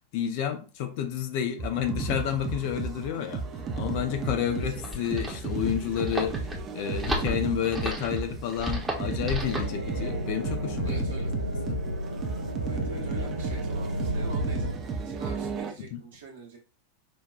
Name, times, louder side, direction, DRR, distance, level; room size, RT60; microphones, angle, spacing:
voice 1, 0.1-3.4 3.8-6.5 6.7-11.0 11.7-11.8 15.8-16.0, left 9 dB, 45° left, 0.6 m, -30 dB
sound 1, 1.6-15.7, right 4 dB, 25° right, 0.5 m, -34 dB
voice 2, 4.4-4.7 9.6-9.7 10.8-11.3 12.7-16.6, right 4 dB, 65° right, 1.0 m, -45 dB
sound 2, 4.7-9.7, equal, 5° right, 0.9 m, -33 dB
sound 3, 9.4-14.8, equal, 90° right, 0.3 m, -32 dB
5.2 x 2.2 x 2.3 m
figure-of-eight pair, 90°, 0 cm